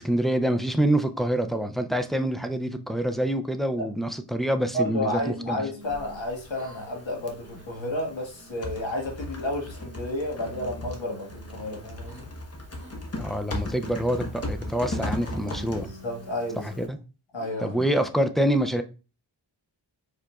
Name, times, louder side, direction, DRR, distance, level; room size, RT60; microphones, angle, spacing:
voice 1, 0.0-5.6 13.2-15.9 16.6-17.0 17.6-18.8, right 1 dB, ahead, 0.3 m, -26 dB
voice 2, 4.7-12.3 15.8-16.7 17.3-17.7, left 1 dB, 75° left, 1.6 m, -31 dB
sound 1, 5.1-6.3 6.5-7.0 7.4-7.8 8.3-8.9 9.4-10.1 10.5-12.3 12.8-12.9 13.5-13.9 14.5-15.0 15.3-16.9 17.4-18.0, right 1 dB, 30° right, 0.9 m, -45 dB
Typing, 5.8-16.9, left 1 dB, 30° left, 1.0 m, -37 dB
4.9 x 4.6 x 2.3 m
wide cardioid pair, 100°, 46 cm